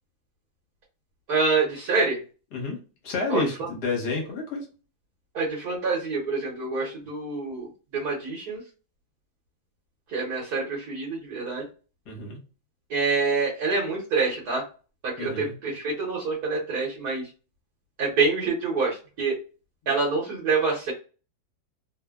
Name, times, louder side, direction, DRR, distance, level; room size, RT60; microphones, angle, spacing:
voice 1, 1.3-2.2 3.3-3.4 5.3-8.6 10.1-11.6 12.9-14.6 15.0-17.3 18.0-19.4 19.9-20.9, right 4 dB, 60° right, -3 dB, 1.2 m, -26 dB
voice 2, 3.0-4.7 12.1-12.4 15.2-15.5, left 3 dB, 60° left, 0 dB, 1.4 m, -30 dB
3.2 x 2.0 x 2.2 m, 0.34 s
omnidirectional pair, 2.1 m